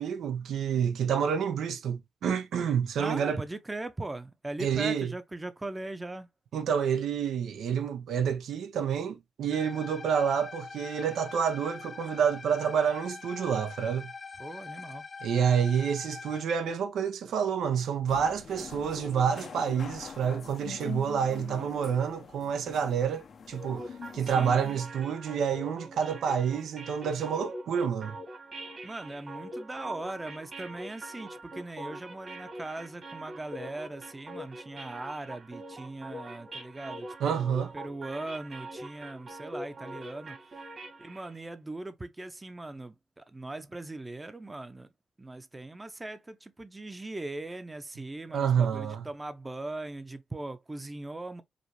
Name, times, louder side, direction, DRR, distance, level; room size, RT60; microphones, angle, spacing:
voice 1, 0.0-3.4 4.6-5.1 6.5-14.1 15.2-23.8 24.1-28.2 37.2-37.7 48.3-49.1, right 7 dB, 85° right, 0.8 m, -28 dB
voice 2, 3.0-6.3 14.4-15.0 24.2-24.6 28.8-40.4 41.0-44.9 45.2-51.4, right 2 dB, 20° right, 0.7 m, -40 dB
sound 1, 9.5-16.4, left 4 dB, 40° left, 0.4 m, -44 dB
sound 2, 18.1-24.8, left 6 dB, 60° left, 0.8 m, -44 dB
sound 3, 23.5-41.4, right 1 dB, 50° right, 1.7 m, -43 dB
5.1 x 2.4 x 3.1 m
cardioid pair, 80°, 0 cm